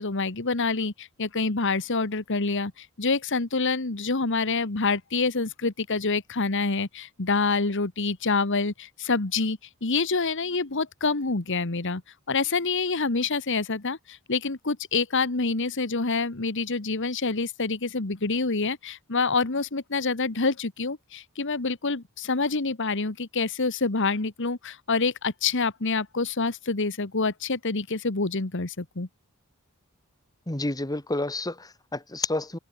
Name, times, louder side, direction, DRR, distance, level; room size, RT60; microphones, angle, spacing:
voice 1, 0.0-12.0 12.3-29.1, left 4 dB, 60° left, 1.5 m, -27 dB
voice 2, 30.5-32.6, left 2 dB, 20° left, 1.7 m, -30 dB
head